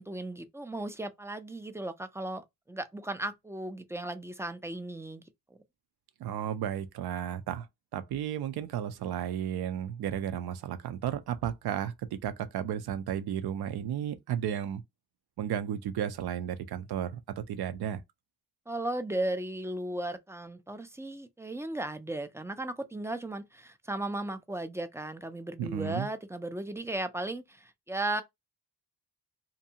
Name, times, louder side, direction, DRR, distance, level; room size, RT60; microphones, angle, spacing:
voice 1, 0.0-5.2 18.7-28.2, right 1 dB, 10° right, 0.3 m, -36 dB
voice 2, 6.2-7.7 7.9-14.8 15.4-18.0 25.6-26.1, right 9 dB, 70° right, 0.5 m, -33 dB
2.6 x 2.2 x 2.7 m
cardioid pair, 75°, 39 cm